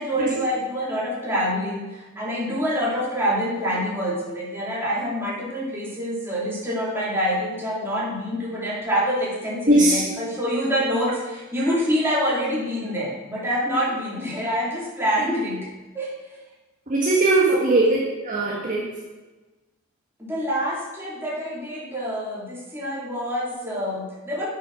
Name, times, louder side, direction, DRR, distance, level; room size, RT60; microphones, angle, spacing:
voice 1, 0.0-15.7 15.9-16.1 17.5-17.7 20.2-24.5, equal, 10° right, -7 dB, 3.1 m, -26 dB
voice 2, 9.7-10.0 16.9-18.0 18.2-18.9, right 2 dB, 40° right, -5 dB, 1.7 m, -19 dB
8.7 x 6.8 x 6.1 m, 1.2 s
head